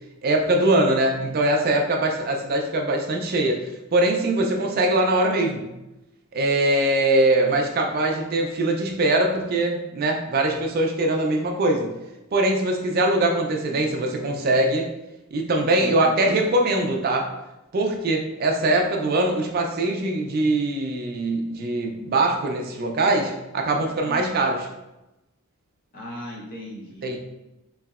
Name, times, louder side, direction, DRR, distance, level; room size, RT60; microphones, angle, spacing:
voice 1, 0.2-3.6 3.9-5.7 6.3-11.9 12.3-14.9 15.3-17.2 17.7-24.7 27.0-27.2, right 2 dB, 40° right, 2 dB, 0.4 m, -22 dB
voice 2, 15.8-16.2 24.0-24.3 25.9-27.2, equal, 40° left, -4 dB, 0.7 m, -37 dB
3.0 x 2.7 x 2.3 m, 0.97 s
head